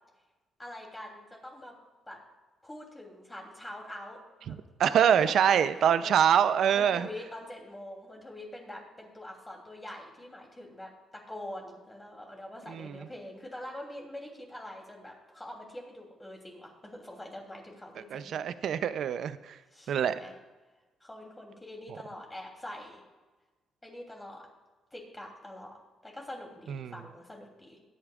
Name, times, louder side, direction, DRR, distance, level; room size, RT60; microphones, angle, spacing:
voice 1, 0.6-1.7 2.1-2.2 2.6-4.6 4.9-5.7 6.0-6.2 6.7-18.3 19.7-20.3 21.0-23.0 23.8-24.4 24.9-25.8 26.0-27.8, left 1 dB, 15° left, 3.0 m, -44 dB
voice 2, 4.5-7.1 12.7-13.1 18.1-19.6 19.9-20.2 26.7-26.9, right 9 dB, 70° right, 0.5 m, -25 dB
22.5 x 8.6 x 2.4 m
cardioid pair, 90°, 0 cm